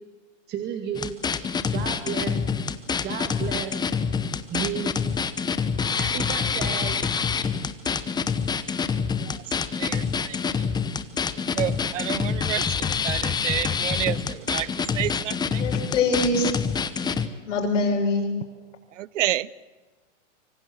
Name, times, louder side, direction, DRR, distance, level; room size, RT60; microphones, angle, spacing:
voice 1, 0.5-1.1 1.7-2.4 3.0-3.7 4.5-4.9 6.0-7.0, right 9 dB, 25° right, 5 dB, 2.2 m, -32 dB
sound 1, 0.9-17.3, left 6 dB, 10° left, 0.9 m, -26 dB
voice 2, 9.8-10.4 11.6-12.7 13.0-14.7 14.9-15.6 19.0-19.5, right 13 dB, 80° right, 22 dB, 0.8 m, -29 dB
voice 3, 15.6-16.5 17.0-17.1 17.4-18.3, left 2 dB, 80° left, 0 dB, 6.3 m, -24 dB
25.0 x 24.5 x 7.9 m, 1.3 s
hypercardioid pair, 135°, 37 cm